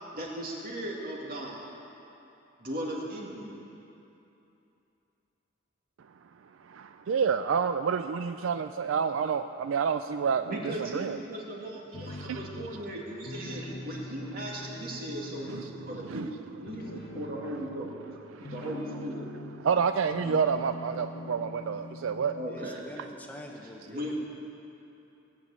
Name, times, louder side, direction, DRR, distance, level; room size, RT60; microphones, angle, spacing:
voice 1, 0.1-1.7 2.6-3.6 10.4-18.0 18.5-19.3 22.3-23.0 23.6-24.1, equal, 50° right, -2 dB, 2.4 m, -38 dB
voice 2, 6.6-10.6 10.9-11.2 12.2-12.4 15.5-16.3 16.9-17.1 18.3-18.5 19.6-22.4, right 6 dB, 75° right, 9 dB, 0.4 m, -29 dB
sound 1, 11.9-12.9 13.2-16.2 16.6-19.8 20.1-22.8, left 1 dB, 50° left, 1.0 m, -43 dB
voice 3, 22.5-24.1, equal, 10° left, 1 dB, 1.0 m, -45 dB
17.5 x 7.2 x 8.6 m, 2.8 s
head